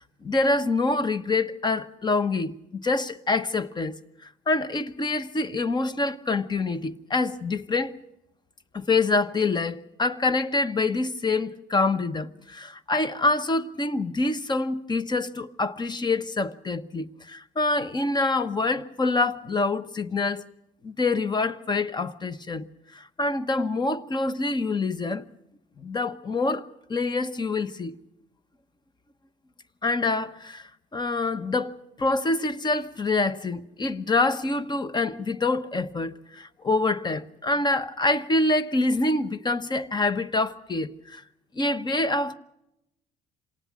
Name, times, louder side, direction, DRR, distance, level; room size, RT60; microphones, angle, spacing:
voice 1, 0.0-7.9 8.7-20.4 20.8-22.7 22.9-25.3 25.8-28.0 29.8-41.2 41.5-42.4, left 3 dB, 25° left, 1.1 m, -26 dB
26.5 x 19.0 x 6.2 m
cardioid pair, 110°, 17 cm